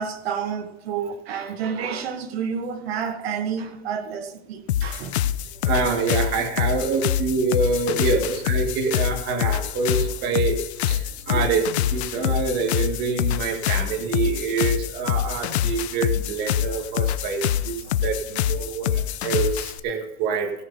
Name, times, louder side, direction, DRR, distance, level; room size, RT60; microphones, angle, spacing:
voice 1, 0.0-5.3 9.6-9.8 11.3-11.4 14.0-14.1 18.5-18.8, right 7 dB, 70° right, 2.0 m, -30 dB
sound 1, 4.7-19.8, left 11 dB, 80° left, 0.8 m, -25 dB
voice 2, 5.6-10.6 10.9-20.5, right 4 dB, 30° right, 1.8 m, -26 dB
17.5 x 6.4 x 5.4 m
supercardioid pair, 165°, 32 cm